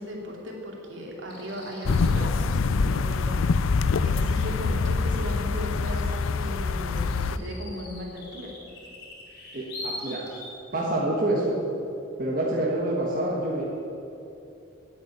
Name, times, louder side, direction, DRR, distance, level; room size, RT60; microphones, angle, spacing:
voice 1, 0.0-3.6 4.0-8.5, equal, 65° right, -1 dB, 2.6 m, -37 dB
sound 1, 1.3-2.0 6.1-6.2 6.5-10.6, left 2 dB, 55° left, 3.8 m, -42 dB
sound 2, 1.9-7.4, left 4 dB, 80° left, 0.5 m, -25 dB
voice 2, 9.5-10.2 10.7-11.6 12.2-13.6, right 1 dB, 45° right, -4 dB, 1.6 m, -26 dB
9.8 x 8.8 x 9.6 m, 2.8 s
head